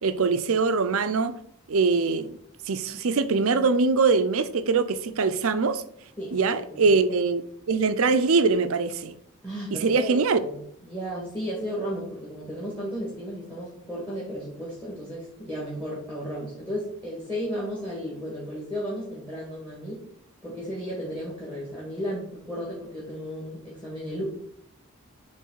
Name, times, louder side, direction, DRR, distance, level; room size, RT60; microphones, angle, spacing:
voice 1, 0.0-1.4 1.7-2.3 2.7-5.8 6.3-9.1 9.7-10.4, right 4 dB, 75° right, 0.5 m, -23 dB
voice 2, 6.2-6.8 9.4-10.6 10.8-20.0 20.4-24.2, equal, 5° left, 1.7 m, -34 dB
7.0 x 3.3 x 4.7 m
head